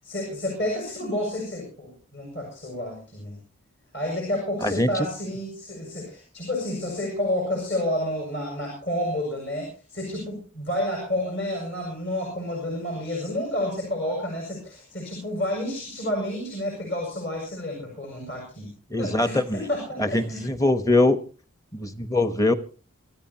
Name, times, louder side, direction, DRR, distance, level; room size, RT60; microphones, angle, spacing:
voice 1, 0.0-3.4 3.9-18.7 19.0-20.5, left 1 dB, 55° left, 0 dB, 7.1 m, -30 dB
voice 2, 4.6-5.1 18.9-19.7 20.0-21.2 21.7-22.5, left 2 dB, 15° left, 11 dB, 1.1 m, -22 dB
27.0 x 13.5 x 2.9 m, 0.35 s
head